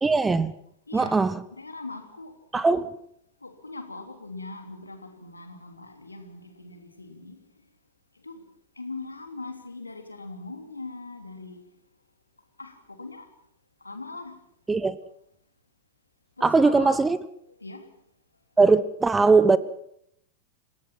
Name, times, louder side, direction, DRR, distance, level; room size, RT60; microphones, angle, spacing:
voice 1, 0.0-0.5 0.9-1.4 2.5-2.9 14.7-15.0 16.4-17.2 18.6-19.6, right 4 dB, 10° right, 1.0 m, -20 dB
voice 2, 0.9-1.2 1.5-2.9 3.4-7.4 8.2-8.4 8.8-11.6 12.6-13.3 13.8-14.4 16.4-17.0 17.6-17.9, left 3 dB, 80° left, 3.1 m, -40 dB
28.5 x 16.5 x 5.9 m
figure-of-eight pair, 90°, 0 cm